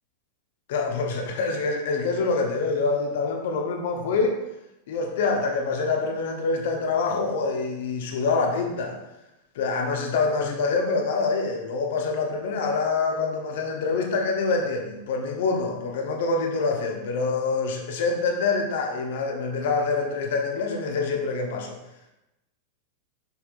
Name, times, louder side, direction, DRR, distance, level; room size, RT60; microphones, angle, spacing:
voice 1, 0.7-4.4 4.9-9.0 9.5-21.7, left 4 dB, 55° left, 2 dB, 1.1 m, -26 dB
7.1 x 6.2 x 2.5 m, 0.93 s
figure-of-eight pair, 90°, 0 cm